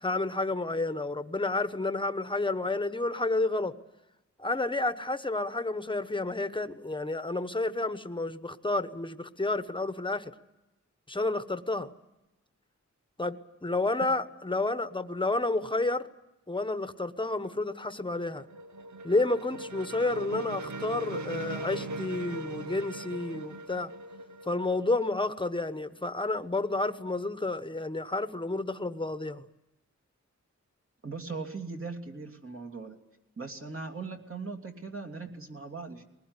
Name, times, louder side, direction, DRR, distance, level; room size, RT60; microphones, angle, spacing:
voice 1, 0.0-3.7 4.4-10.3 11.1-11.9 13.2-16.1 16.5-18.4 19.0-23.9 24.4-29.4, left 2 dB, 15° left, 11 dB, 1.1 m, -30 dB
sound 1, 17.8-25.6, right 2 dB, 80° right, 0.9 m, -40 dB
voice 2, 31.0-32.9 33.4-36.0, right 4 dB, 50° right, 3 dB, 2.9 m, -39 dB
21.5 x 20.0 x 9.7 m, 0.97 s
wide cardioid pair, 110°, 29 cm